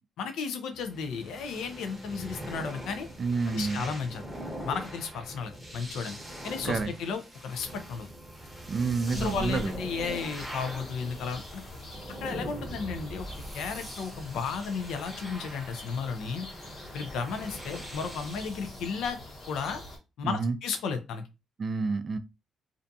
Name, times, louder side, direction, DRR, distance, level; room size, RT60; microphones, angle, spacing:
voice 1, 0.2-3.1 3.5-4.2 4.6-6.2 6.4-8.1 9.1-11.6 12.2-13.3 13.5-16.5 16.9-19.2 19.5-19.8 20.2-21.2, left 5 dB, 80° left, 0.5 m, -34 dB
sound 1, 0.7-18.8, equal, ahead, 0.8 m, -42 dB
voice 2, 3.2-3.8 6.6-6.9 8.7-9.7 20.2-20.5 21.6-22.2, right 4 dB, 45° right, 0.3 m, -29 dB
sound 2, 9.0-20.0, left 1 dB, 55° left, 1.2 m, -44 dB
2.5 x 2.3 x 2.6 m
cardioid pair, 90°, 0 cm